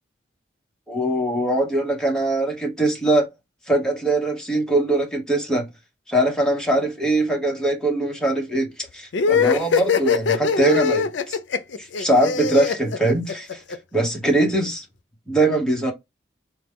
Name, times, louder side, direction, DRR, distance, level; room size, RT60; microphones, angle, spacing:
voice 1, 0.9-3.3 3.7-5.7 6.1-11.4 11.8-13.6 13.9-14.8 15.3-15.9, right 1 dB, 5° left, 1.1 m, -22 dB
sound 1, 9.1-13.8, left 5 dB, 70° left, 0.5 m, -21 dB
4.7 x 2.3 x 3.6 m
head